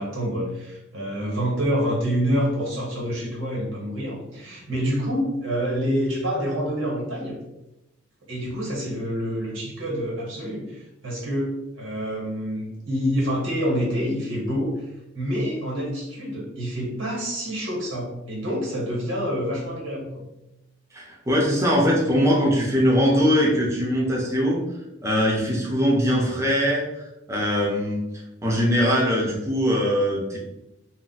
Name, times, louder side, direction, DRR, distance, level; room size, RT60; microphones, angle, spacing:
voice 1, 0.0-7.3 8.3-14.7 15.1-20.1, equal, 90° right, -2 dB, 1.2 m, -27 dB
voice 2, 20.9-24.6 25.0-26.8 27.3-28.0 28.4-30.4, equal, 15° right, -3 dB, 0.5 m, -21 dB
2.4 x 2.1 x 3.9 m, 0.93 s
head